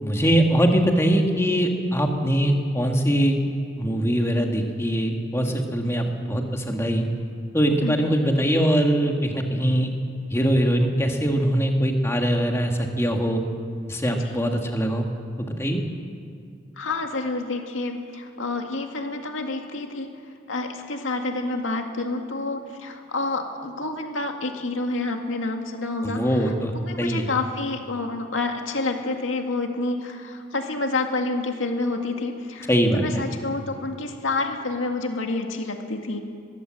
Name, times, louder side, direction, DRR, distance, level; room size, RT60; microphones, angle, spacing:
voice 1, 0.0-3.4 3.8-7.1 7.5-9.9 10.3-13.4 13.9-15.1 15.4-15.8 26.0-26.7 27.0-27.3 32.7-33.2, equal, 15° left, 3 dB, 1.8 m, -22 dB
voice 2, 14.1-14.4 16.8-20.1 20.5-36.2, left 3 dB, 80° left, 4 dB, 2.1 m, -29 dB
21.5 x 15.5 x 7.8 m, 2.3 s
head